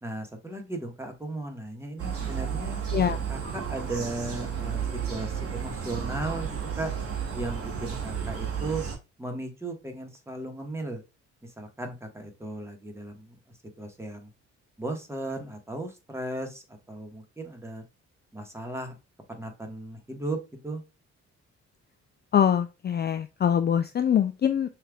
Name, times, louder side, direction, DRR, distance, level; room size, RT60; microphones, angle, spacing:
voice 1, 0.0-2.8 3.3-6.9 7.3-8.8 9.2-11.0 11.4-13.4 13.8-14.3 14.8-17.8 18.3-18.9 19.3-20.4 20.6-20.8, right 2 dB, 10° right, 3 dB, 1.4 m, -36 dB
sound 1, 2.0-9.0, right 7 dB, 50° right, 1.7 m, -32 dB
voice 2, 22.3-24.7, left 9 dB, 35° left, 9 dB, 0.4 m, -23 dB
5.7 x 3.3 x 2.3 m, 0.28 s
cardioid pair, 90°, 30 cm